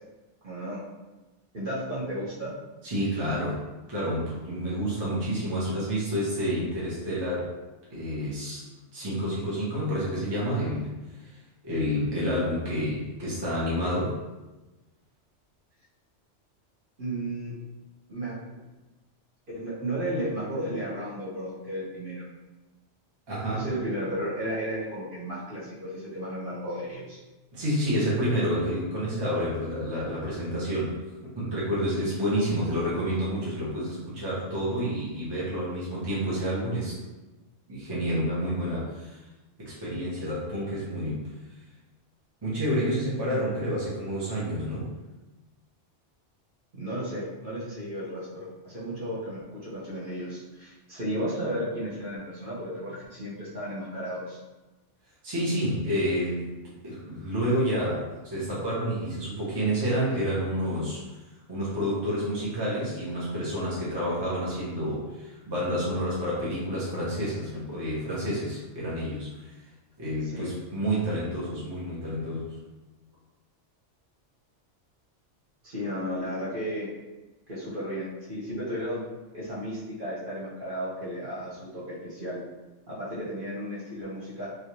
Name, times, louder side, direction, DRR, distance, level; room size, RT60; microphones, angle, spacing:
voice 1, 0.4-0.8 1.5-2.5 17.0-17.5 18.1-18.4 19.5-22.3 23.5-27.2 46.7-54.4 70.2-70.5 75.6-76.9 77.5-79.0 79.3-82.4 82.9-84.5, equal, 50° right, -8 dB, 1.2 m, -34 dB
voice 2, 2.8-7.5 7.9-8.6 8.9-11.3 11.6-14.2 23.3-23.7 27.5-31.0 31.3-37.0 37.7-39.2 39.6-41.3 42.4-44.9 55.2-56.6 56.8-61.1 61.5-69.5 70.0-72.6, equal, 25° right, -7 dB, 0.9 m, -29 dB
3.3 x 2.6 x 3.0 m, 1.1 s
omnidirectional pair, 1.2 m